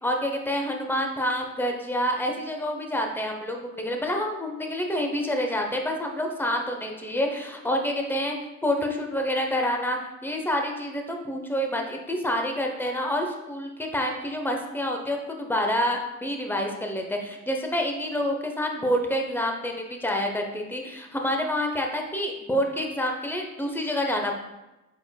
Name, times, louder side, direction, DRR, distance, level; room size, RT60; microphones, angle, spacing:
voice 1, 0.0-8.4 8.6-24.3, equal, 5° left, 2 dB, 0.7 m, -28 dB
5.0 x 4.3 x 2.3 m, 1.0 s
cardioid pair, 90°, 30 cm